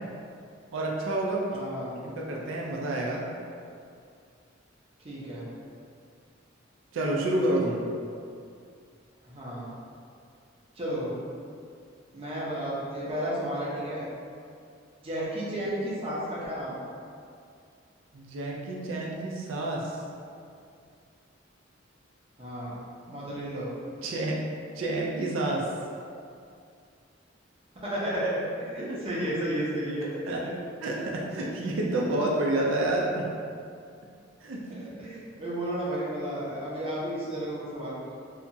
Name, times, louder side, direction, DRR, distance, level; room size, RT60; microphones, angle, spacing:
voice 1, 0.7-1.6 2.0-3.2 6.9-7.8 18.1-20.0 24.0-25.7 30.3-30.5 30.8-33.4 34.4-34.9, right 1 dB, 90° right, -2 dB, 0.4 m, -29 dB
voice 2, 1.5-1.9 5.0-5.5 9.2-9.7 10.7-11.1 12.1-14.0 15.0-16.9 22.4-22.8 23.0-23.7 27.7-28.3 28.6-30.2 34.7-38.0, right 1 dB, 30° right, -7 dB, 0.6 m, -32 dB
2.8 x 2.3 x 2.6 m, 2.3 s
head